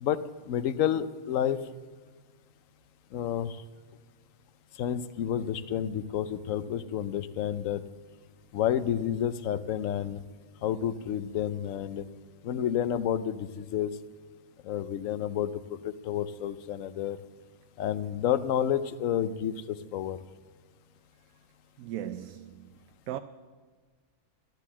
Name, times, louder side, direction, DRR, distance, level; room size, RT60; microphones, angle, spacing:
voice 1, 0.0-1.6 3.1-3.6 4.8-7.8 8.5-10.2 10.6-12.0 12.4-13.9 14.6-17.2 17.8-20.2, left 10 dB, 70° left, 1.0 m, -30 dB
voice 2, 21.8-23.2, right 11 dB, 75° right, 1.0 m, -38 dB
13.0 x 10.5 x 7.2 m
omnidirectional pair, 1.5 m